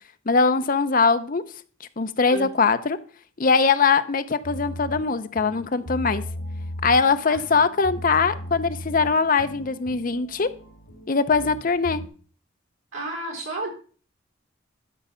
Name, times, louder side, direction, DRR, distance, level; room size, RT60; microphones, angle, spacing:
voice 1, 0.3-1.4 2.0-3.0 3.4-6.2 6.8-10.5 11.1-12.0, left 4 dB, 40° left, 11 dB, 0.6 m, -21 dB
sound 1, 4.4-12.1, left 1 dB, 85° left, 2.0 m, -37 dB
voice 2, 12.9-13.7, right 2 dB, 85° right, 1 dB, 4.0 m, -31 dB
12.5 x 4.9 x 5.6 m, 0.40 s
head